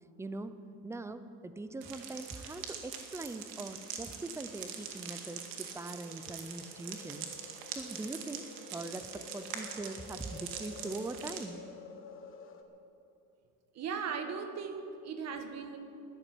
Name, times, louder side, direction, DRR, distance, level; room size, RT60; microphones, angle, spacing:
voice 1, 0.2-0.5 0.8-7.3 7.8-11.6, right 2 dB, 10° right, 11 dB, 0.6 m, -42 dB
sound 1, 1.8-11.4, right 8 dB, 75° right, 2.2 m, -44 dB
sound 2, 3.6-12.6, left 5 dB, 35° left, 1.4 m, -52 dB
voice 2, 13.7-15.8, right 6 dB, 45° right, 7 dB, 1.6 m, -38 dB
13.0 x 11.0 x 9.4 m, 2.6 s
cardioid pair, 145°, 36 cm